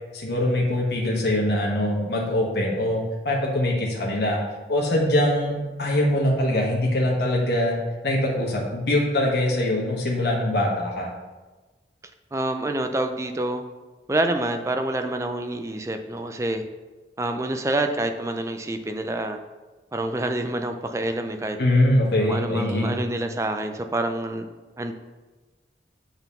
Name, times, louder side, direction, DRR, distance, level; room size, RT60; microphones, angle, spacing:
voice 1, 0.1-4.4 4.7-11.1 21.6-23.0, left 1 dB, 60° left, -3 dB, 1.2 m, -23 dB
voice 2, 12.3-13.6 14.1-16.6 17.2-19.4 19.9-21.6 22.2-24.4 24.8-24.9, right 1 dB, 15° right, 6 dB, 0.4 m, -27 dB
6.9 x 3.9 x 5.5 m, 1.2 s
head